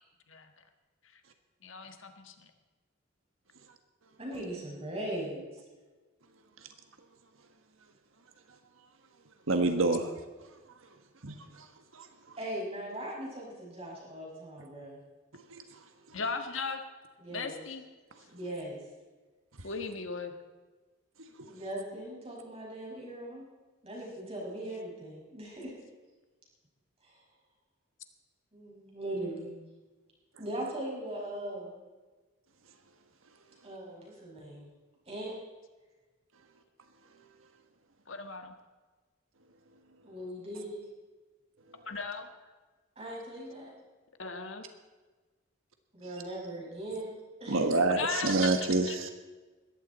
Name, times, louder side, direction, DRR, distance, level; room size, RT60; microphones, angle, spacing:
voice 1, 1.6-2.5 16.1-16.8 17.3-17.8 19.6-20.3 38.1-38.5 41.8-42.3 44.2-44.6 47.9-48.4 48.8-49.0, left 4 dB, 70° left, 7 dB, 1.5 m, -37 dB
voice 2, 4.2-5.6 12.4-15.0 17.2-17.6 18.3-18.8 21.4-23.4 23.8-25.7 27.0-27.2 28.5-29.6 30.4-31.7 33.6-34.7 35.1-35.3 40.0-40.8 43.0-43.7 45.9-47.8, right 1 dB, 30° right, -3 dB, 5.8 m, -39 dB
voice 3, 9.5-10.1 11.2-11.3 11.9-12.1 15.5-15.6 47.5-49.1, right 2 dB, 80° right, 6 dB, 1.4 m, -27 dB
20.5 x 15.0 x 4.2 m, 1.3 s
head